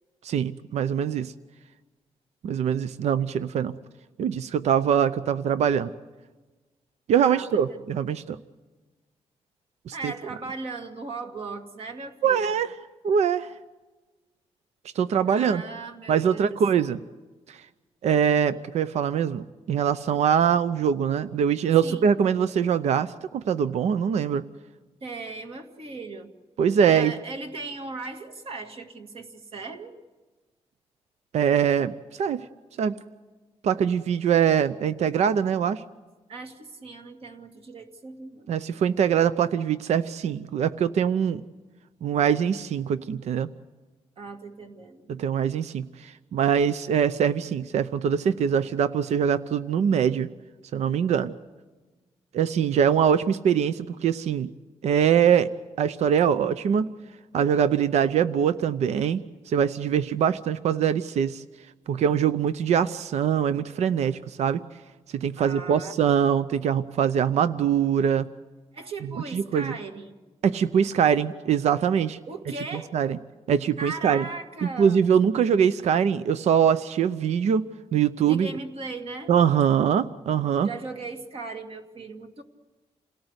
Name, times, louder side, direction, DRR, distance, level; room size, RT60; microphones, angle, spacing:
voice 1, 0.2-1.3 2.4-3.7 4.2-5.9 7.1-8.4 9.9-10.1 12.2-12.7 13.0-13.5 15.0-15.6 16.1-17.0 17.5-17.6 18.0-24.4 26.6-27.1 31.3-32.4 32.8-33.0 33.6-35.8 38.5-41.4 42.0-43.5 45.1-50.3 50.7-51.3 52.3-54.5 54.8-55.5 55.8-56.9 57.3-61.4 61.9-64.6 65.1-68.3 69.3-69.7 70.4-72.2 72.9-73.2 73.5-74.2 74.6-78.5 79.3-80.7, right 8 dB, 85° right, 13 dB, 0.7 m, -23 dB
voice 2, 7.2-7.8 9.9-12.6 15.3-16.6 21.8-22.1 25.0-26.3 26.8-30.0 36.3-38.5 44.2-45.0 65.4-65.9 68.7-70.2 72.3-72.9 73.8-75.0 78.3-79.3 80.6-82.4, right 3 dB, 60° right, 5 dB, 2.1 m, -37 dB
28.5 x 18.0 x 8.1 m, 1.2 s
wide cardioid pair, 135°, 11 cm